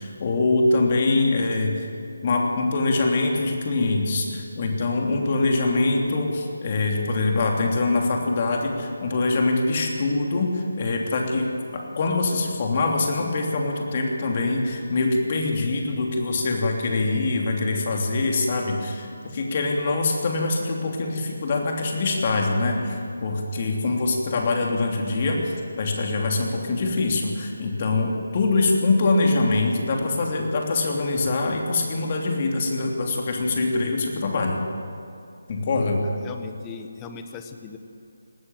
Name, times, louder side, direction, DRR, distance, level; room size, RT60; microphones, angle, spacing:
voice 1, 0.0-1.9 2.2-34.6 35.5-36.0, left 3 dB, 35° left, 1 dB, 3.0 m, -24 dB
voice 2, 36.0-37.8, left 6 dB, 15° left, 7 dB, 1.2 m, -39 dB
19.0 x 14.5 x 9.2 m, 2.6 s
figure-of-eight pair, 150°, 0 cm